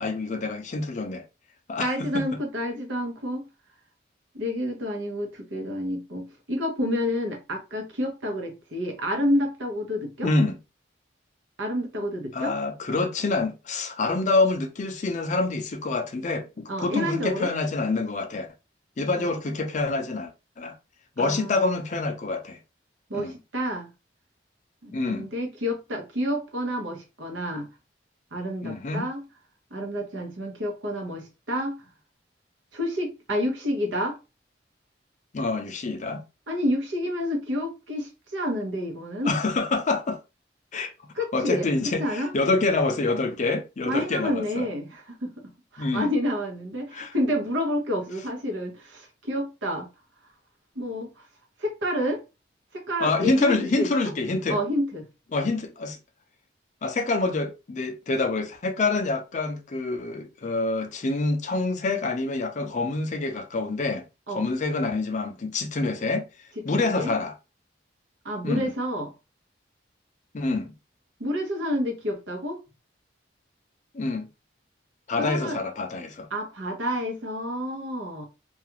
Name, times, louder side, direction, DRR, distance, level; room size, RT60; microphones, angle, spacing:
voice 1, 0.0-1.2 1.7-1.9 2.1-2.2 10.2-10.6 12.3-18.5 19.0-20.3 20.6-20.7 21.2-22.6 23.1-23.3 24.9-25.3 28.6-29.1 35.3-36.2 39.2-40.2 40.7-40.9 41.3-44.7 45.8-46.1 46.9-47.1 53.0-54.6 55.3-56.0 56.8-66.3 66.6-67.4 68.4-68.7 70.3-70.7 73.9-74.3 75.1-76.3, left 3 dB, 40° left, 0.4 m, -26 dB
voice 2, 1.8-3.5 4.3-10.3 11.6-12.5 16.7-17.5 19.1-19.3 21.2-21.6 23.1-23.9 24.8-27.7 28.3-29.2 29.7-31.8 32.7-34.2 36.5-39.3 41.1-42.3 43.8-45.3 45.7-49.9 50.8-51.2 51.6-52.2 52.7-53.9 54.5-55.0 64.3-64.5 66.6-67.1 68.2-69.1 71.2-72.6 75.2-75.6 76.3-78.2, equal, 85° right, 0.9 m, -29 dB
2.4 x 2.3 x 2.9 m
head